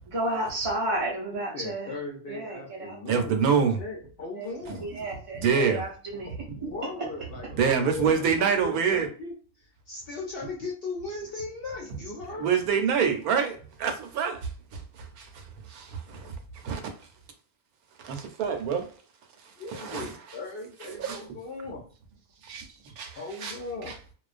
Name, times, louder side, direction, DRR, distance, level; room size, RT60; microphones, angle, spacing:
voice 1, 0.1-1.9 2.3-3.2 4.4-4.5 4.8-6.3, right 1 dB, 60° right, 0.3 m, -32 dB
voice 2, 1.3-3.4 3.8-4.9 6.1-6.2 6.6-9.3 9.9-12.5 19.6-21.8 23.1-24.0, left 3 dB, 65° left, 0.6 m, -38 dB
voice 3, 3.1-3.8 4.7-4.8 5.3-5.8 6.5-6.6 7.6-9.1 12.3-16.4 16.6-16.8 18.0-18.9 19.7-20.1 20.9-21.2 22.4-22.7 23.0-23.6 23.9-24.0, right 6 dB, 85° right, 1.1 m, -26 dB
2.4 x 2.1 x 2.4 m
omnidirectional pair, 1.5 m